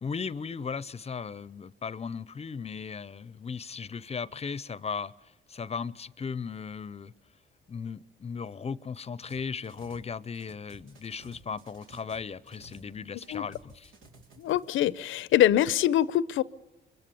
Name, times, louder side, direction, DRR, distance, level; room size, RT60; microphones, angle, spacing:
voice 1, 0.0-5.1 5.5-7.1 7.7-13.9, left 5 dB, 30° left, 0.7 m, -37 dB
sound 1, 9.3-10.1 10.3-12.9 13.2-14.9, right 1 dB, 85° right, 3.6 m, -54 dB
voice 2, 14.4-16.4, left 12 dB, 80° left, 0.7 m, -24 dB
24.5 x 21.5 x 7.0 m
cardioid pair, 90°, 20 cm